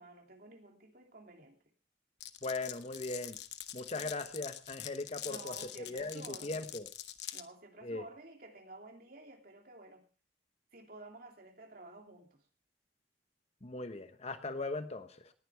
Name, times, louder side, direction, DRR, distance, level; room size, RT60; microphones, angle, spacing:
voice 1, 0.0-1.6 3.9-4.1 5.2-6.7 7.3-10.1 10.7-12.4, right 2 dB, 55° right, 3 dB, 2.8 m, -52 dB
Glass, 2.2-7.4, left 12 dB, 70° left, 0.9 m, -45 dB
voice 2, 2.4-3.4 3.7-6.9 7.8-8.0 13.6-15.3, left 2 dB, 35° left, 10 dB, 1.1 m, -39 dB
19.0 x 11.0 x 3.5 m, 0.33 s
head